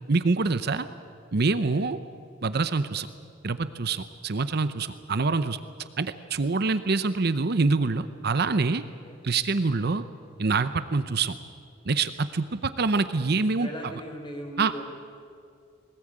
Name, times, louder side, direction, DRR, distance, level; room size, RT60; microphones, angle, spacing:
voice 1, 0.1-0.9 1.3-2.0 2.4-3.1 3.4-5.6 6.0-8.8 9.2-10.0 10.4-11.4 11.9-13.7 14.6-14.7, right 3 dB, 55° right, 12 dB, 0.7 m, -25 dB
voice 2, 1.6-1.9 9.0-9.2 13.6-14.8, equal, 25° left, 3 dB, 3.7 m, -39 dB
21.5 x 19.0 x 8.7 m, 2.3 s
head